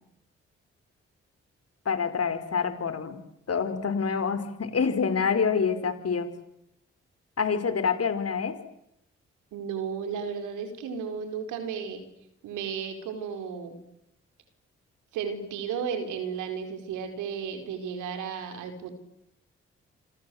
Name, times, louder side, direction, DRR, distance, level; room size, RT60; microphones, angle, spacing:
voice 1, 1.8-3.2 3.5-6.3 7.4-8.6, left 6 dB, 55° left, 10 dB, 5.0 m, -26 dB
voice 2, 9.5-12.0 12.4-13.8 15.1-18.9, right 7 dB, 85° right, 7 dB, 4.9 m, -34 dB
28.0 x 26.5 x 8.0 m, 0.80 s
hypercardioid pair, 40°, 29 cm